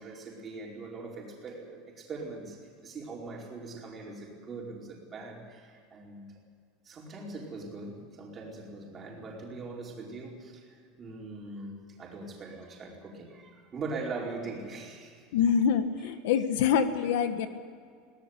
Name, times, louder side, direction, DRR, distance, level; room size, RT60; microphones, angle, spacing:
voice 1, 0.0-6.4 6.8-15.3, right 3 dB, 20° right, -2 dB, 4.8 m, -41 dB
voice 2, 15.3-17.5, left 7 dB, 75° left, 9 dB, 1.5 m, -25 dB
22.0 x 18.5 x 8.1 m, 2.1 s
supercardioid pair, 160°, 0 cm